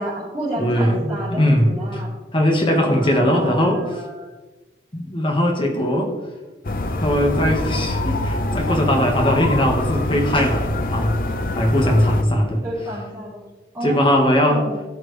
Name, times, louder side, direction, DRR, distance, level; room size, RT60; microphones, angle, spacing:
voice 1, 0.0-2.1 2.8-4.3 12.6-13.4 13.7-14.7, equal, 15° right, -12 dB, 3.2 m, -30 dB
voice 2, 0.6-2.0 2.3-3.8 4.9-6.1 7.0-12.6 13.8-14.6, equal, 30° left, 1 dB, 1.6 m, -20 dB
sound 1, 6.6-12.2, left 2 dB, 50° left, 0.7 m, -24 dB
16.5 x 6.0 x 3.3 m, 1.2 s
head